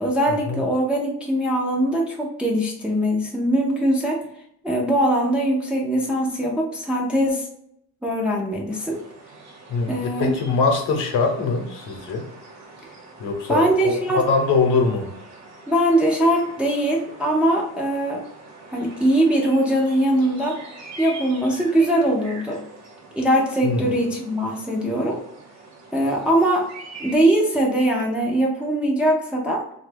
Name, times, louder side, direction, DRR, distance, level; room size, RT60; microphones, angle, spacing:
voice 1, 0.0-4.2 4.6-7.5 8.0-9.0 9.9-10.3 13.5-14.2 15.7-18.2 18.7-20.6 21.0-22.6 23.2-25.2 25.9-26.7 27.0-29.6, right 1 dB, 5° right, -2 dB, 0.3 m, -21 dB
sound 1, 8.7-27.2, right 2 dB, 55° right, 1.0 m, -44 dB
voice 2, 9.7-12.3 13.2-15.1 23.6-24.0, left 4 dB, 70° left, 4 dB, 0.8 m, -22 dB
2.9 x 2.3 x 3.2 m, 0.73 s
cardioid pair, 155°, 32 cm